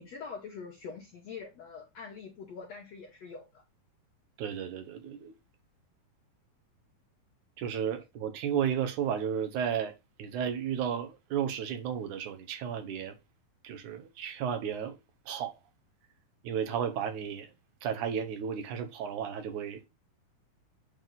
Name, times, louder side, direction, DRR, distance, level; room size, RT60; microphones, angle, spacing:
voice 1, 0.0-3.6, left 5 dB, 60° left, 2.0 m, -44 dB
voice 2, 4.4-5.3 7.6-9.9 10.2-13.2 13.6-15.0 15.3-15.6 16.4-17.5 17.8-19.9, right 8 dB, 70° right, 2.2 m, -33 dB
9.2 x 3.6 x 3.8 m
omnidirectional pair, 4.1 m